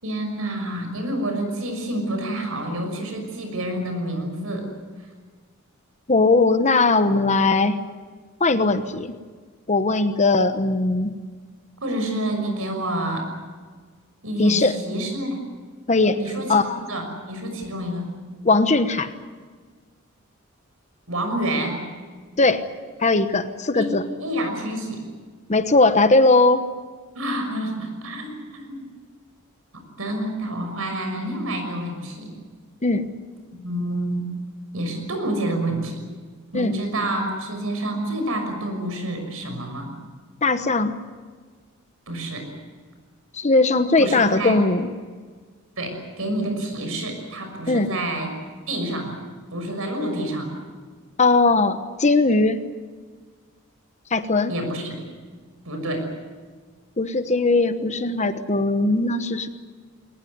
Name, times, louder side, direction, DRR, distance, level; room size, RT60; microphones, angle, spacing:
voice 1, 0.0-4.7 11.8-13.3 14.2-15.4 16.1-18.1 21.1-21.8 23.7-23.9 24.2-25.0 27.1-28.9 29.7-32.3 33.5-34.4 34.7-36.0 36.5-39.9 42.1-42.5 44.0-44.6 45.8-48.3 48.7-49.2 49.5-50.6 54.5-55.0 55.6-56.1, right 1 dB, 70° right, 5 dB, 6.2 m, -28 dB
voice 2, 6.1-7.8 8.4-9.1 9.7-11.1 14.4-14.8 15.9-16.2 16.5-16.8 18.4-19.1 22.4-22.6 23.0-24.0 25.5-26.7 32.8-33.1 36.5-36.7 40.4-41.0 43.3-44.9 47.7-47.9 51.2-52.6 54.1-54.5 57.0-59.5, left 3 dB, 30° left, 10 dB, 1.1 m, -19 dB
22.0 x 19.0 x 9.5 m, 1.5 s
head